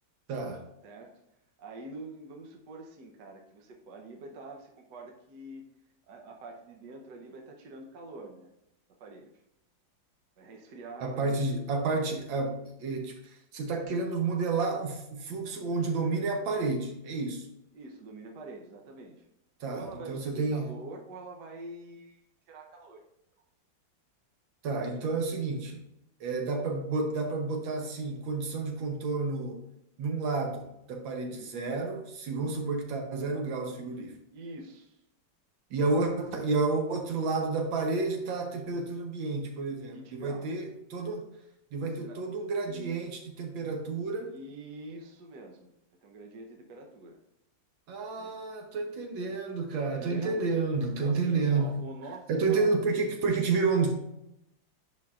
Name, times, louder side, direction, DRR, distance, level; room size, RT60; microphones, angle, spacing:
voice 1, 0.3-0.6 11.0-17.5 19.6-20.7 24.6-25.8 26.2-29.6 30.0-34.2 35.7-41.3 41.7-43.1 43.4-44.3 47.9-51.7 52.3-53.9, right 3 dB, 80° right, 3 dB, 1.7 m, -30 dB
voice 2, 0.8-1.1 1.6-5.7 6.1-8.5 9.0-9.3 10.4-11.5 17.7-19.3 19.7-23.0 34.3-35.0 39.9-40.6 41.8-42.2 42.7-43.0 44.1-45.7 46.0-47.2 48.1-48.3 49.8-50.5 51.0-52.7, right 2 dB, 65° right, 2 dB, 1.4 m, -45 dB
10.5 x 4.5 x 2.4 m, 0.83 s
omnidirectional pair, 2.1 m